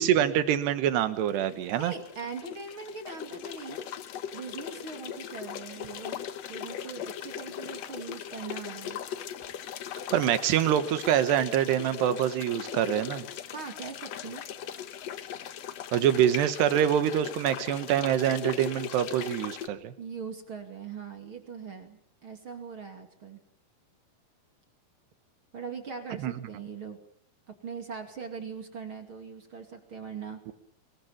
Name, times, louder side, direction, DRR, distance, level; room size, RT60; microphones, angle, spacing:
voice 1, 0.0-1.9 10.1-13.3 15.9-19.9 26.2-26.3 30.5-30.6, right 10 dB, 80° right, 11 dB, 3.5 m, -25 dB
sound 1, 1.1-19.7, left 9 dB, 85° left, 1.4 m, -39 dB
voice 2, 1.8-3.9 4.3-6.2 6.5-9.0 13.5-14.4 20.0-23.4 25.5-27.0 27.5-30.4, right 5 dB, 35° right, 5 dB, 2.7 m, -41 dB
24.0 x 21.0 x 7.3 m, 0.68 s
omnidirectional pair, 4.8 m